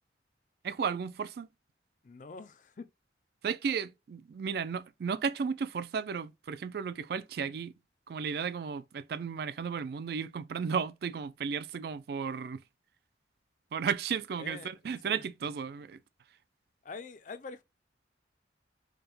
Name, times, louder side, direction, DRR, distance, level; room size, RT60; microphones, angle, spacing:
voice 1, 0.6-1.5 3.4-7.7 8.1-12.6 13.7-16.0, right 6 dB, 55° right, 0.3 m, -34 dB
voice 2, 2.0-2.9 14.4-14.8 15.0-15.3 16.8-17.6, left 4 dB, 45° left, 0.4 m, -45 dB
4.9 x 2.2 x 3.1 m
head